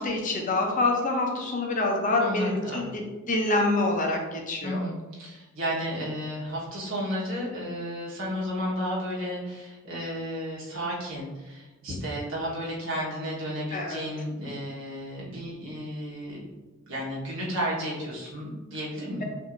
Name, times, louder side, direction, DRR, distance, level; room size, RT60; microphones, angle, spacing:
voice 1, 0.0-3.0 3.3-4.8 13.7-14.0, left 2 dB, 40° left, 1 dB, 0.7 m, -26 dB
voice 2, 2.2-2.9 4.6-16.4 16.9-19.2, equal, 65° right, -5 dB, 1.3 m, -33 dB
6.1 x 2.7 x 2.6 m, 1.2 s
head